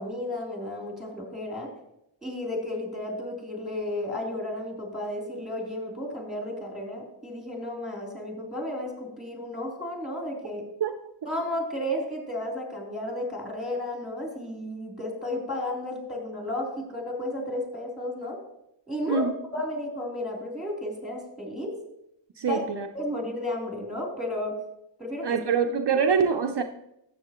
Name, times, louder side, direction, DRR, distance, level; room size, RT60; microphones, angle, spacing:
voice 1, 0.0-1.7 2.2-10.6 11.2-18.4 18.9-21.7 22.5-22.6 22.9-24.6 25.0-25.4, left 1 dB, ahead, -1 dB, 3.3 m, -33 dB
voice 2, 22.4-22.9 25.2-26.6, right 6 dB, 60° right, 4 dB, 0.6 m, -24 dB
13.5 x 7.7 x 3.0 m, 0.81 s
wide cardioid pair, 90°, 47 cm